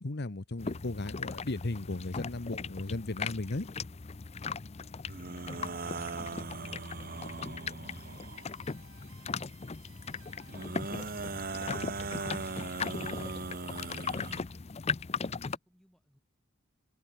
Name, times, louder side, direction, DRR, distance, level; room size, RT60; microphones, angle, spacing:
voice 1, 0.0-3.7, left 2 dB, 50° left, 1.0 m, -36 dB
sound 1, 0.6-15.6, left 5 dB, 30° left, 0.5 m, -39 dB
sound 2, 5.1-8.5 10.5-14.4, right 4 dB, 40° right, 1.3 m, -39 dB
sound 3, 8.0-13.9, right 7 dB, 70° right, 4.8 m, -60 dB
voice 2, 15.2-16.2, equal, 5° left, 6.9 m, -65 dB
head